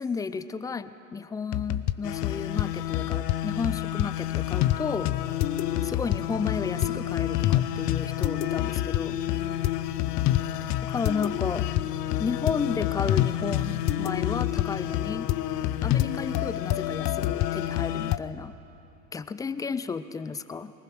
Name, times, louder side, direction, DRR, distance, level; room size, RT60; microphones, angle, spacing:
voice 1, 0.0-5.1 5.9-9.2 10.8-11.7 12.2-15.3 15.8-18.5 19.1-20.7, left 5 dB, 10° left, 14 dB, 0.4 m, -32 dB
sound 1, 1.5-1.9 2.2-2.6 2.9-3.4 3.6-4.1 4.3-4.8 5.1-18.2, left 13 dB, 35° left, 0.7 m, -28 dB
sound 2, 2.0-18.2, left 13 dB, 85° left, 0.7 m, -33 dB
voice 2, 5.2-6.0 9.3-10.4 14.4-16.1, left 6 dB, 60° left, -8 dB, 4.4 m, -47 dB
22.0 x 20.0 x 6.1 m, 2.9 s
hypercardioid pair, 85°, 46 cm